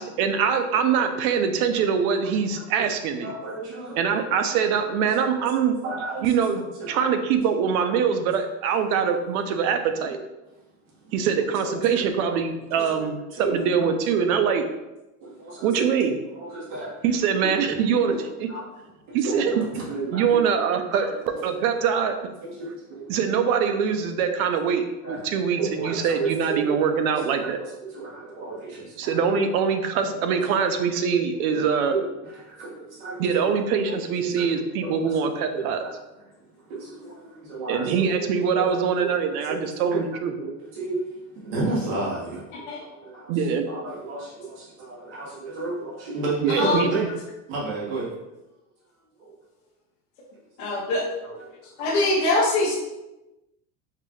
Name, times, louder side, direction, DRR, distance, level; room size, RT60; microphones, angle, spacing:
voice 1, 0.0-3.3 4.0-5.8 6.2-10.2 11.1-14.7 15.6-16.1 17.0-18.5 19.1-19.7 20.1-22.2 23.1-27.6 29.0-31.9 33.2-35.8 37.7-40.3 43.3-43.7 46.4-46.9, right 6 dB, 85° right, 7 dB, 0.6 m, -23 dB
voice 2, 3.2-4.0 4.8-4.9 5.5-6.4 6.8-7.1 7.8-7.9 11.7-11.8 12.7-13.0 13.3-13.9 15.2-15.9 16.3-16.9 17.8-17.9 18.5-18.6 19.1-20.4 20.9-21.0 21.3-21.4 22.4-23.2 25.0-25.2 25.6-26.7 27.8-29.2 30.1-30.4 31.5-33.5 33.9-34.9 35.5-35.9 36.7-38.3 38.6-38.7 39.0-39.1 39.5-40.1 40.4-41.1 41.4-43.4 43.7-47.1 47.5-48.1 49.2-49.3 50.6-50.7 51.3-51.5 51.8-52.2, right 3 dB, 60° right, -6 dB, 1.5 m, -32 dB
voice 3, 50.6-51.4 51.8-52.7, left 2 dB, 60° left, -6 dB, 0.9 m, -23 dB
4.7 x 2.3 x 3.0 m, 0.99 s
cardioid pair, 180°, 42 cm